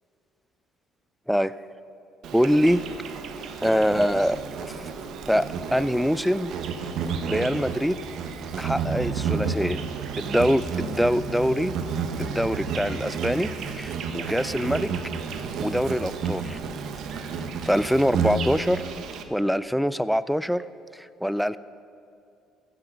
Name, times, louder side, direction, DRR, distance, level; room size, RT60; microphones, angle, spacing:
Insect, 2.2-19.2, right 5 dB, 65° right, 0.9 m, -31 dB
voice 1, 2.3-2.9 3.6-4.4 5.3-6.6 7.3-8.0 8.6-9.8 10.2-11.8 12.2-14.9 15.6-16.6 17.2-17.3 17.6-18.8 19.3-20.6 21.0-21.6, equal, ahead, 16 dB, 0.3 m, -24 dB
15.5 x 6.1 x 5.7 m, 2.5 s
supercardioid pair, 75°, 0 cm